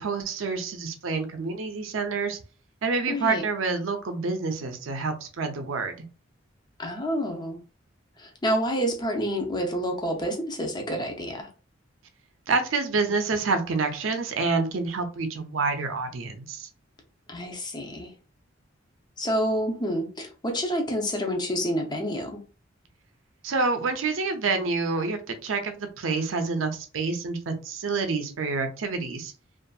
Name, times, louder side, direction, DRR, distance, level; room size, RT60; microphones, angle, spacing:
voice 1, 0.0-2.4 2.8-6.0 12.5-16.7 23.4-29.3, right 4 dB, 90° right, 6 dB, 0.5 m, -28 dB
voice 2, 3.1-3.4 6.8-7.6 8.2-11.5 17.3-18.1 19.2-22.4, equal, 20° left, 3 dB, 0.6 m, -28 dB
2.6 x 2.5 x 2.3 m, 0.36 s
head